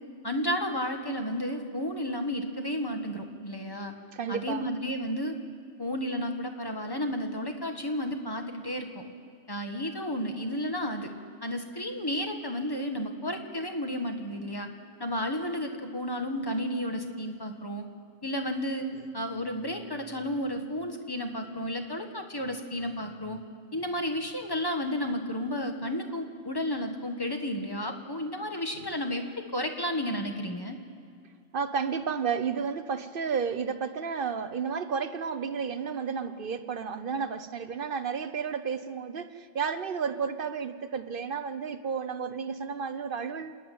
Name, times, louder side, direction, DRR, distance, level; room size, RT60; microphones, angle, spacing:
voice 1, 0.2-3.9 4.3-5.3 5.8-9.0 9.5-11.1 11.4-14.7 15.0-17.8 18.2-18.9 19.1-23.4 23.7-30.8, equal, 20° left, 5 dB, 1.7 m, -32 dB
voice 2, 4.1-4.7 28.8-28.9 31.5-43.6, right 6 dB, 50° right, 11 dB, 0.9 m, -32 dB
28.0 x 11.0 x 9.3 m, 2.3 s
omnidirectional pair, 1.2 m